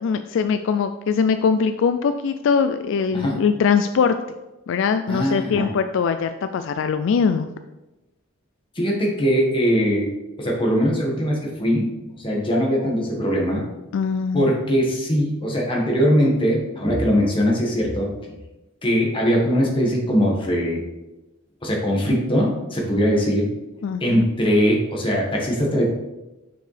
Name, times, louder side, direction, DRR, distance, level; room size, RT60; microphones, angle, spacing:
voice 1, 0.0-4.2 4.7-7.5 13.9-14.5 23.8-24.2, left 6 dB, 65° left, 9 dB, 0.3 m, -21 dB
voice 2, 5.1-5.7 8.7-10.1 10.4-11.9 12.2-13.7 14.3-18.1 18.8-20.8 21.6-23.5 24.0-25.8, equal, 25° left, -2 dB, 1.6 m, -21 dB
6.6 x 6.5 x 3.3 m, 1.0 s
head